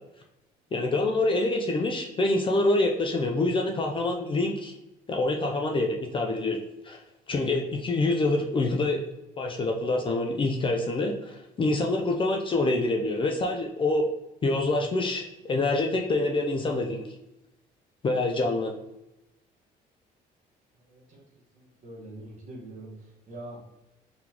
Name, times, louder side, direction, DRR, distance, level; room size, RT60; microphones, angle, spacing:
voice 1, 0.7-4.7 5.1-6.6 6.8-7.0 7.3-9.0 9.4-14.1 14.4-17.0 18.0-18.7, left 2 dB, 30° left, 2 dB, 0.5 m, -26 dB
voice 2, 20.9-21.2 21.5-22.9 23.3-23.6, right 1 dB, 45° right, -3 dB, 1.5 m, -43 dB
3.9 x 3.7 x 2.9 m, 0.93 s
cardioid pair, 110°, 17 cm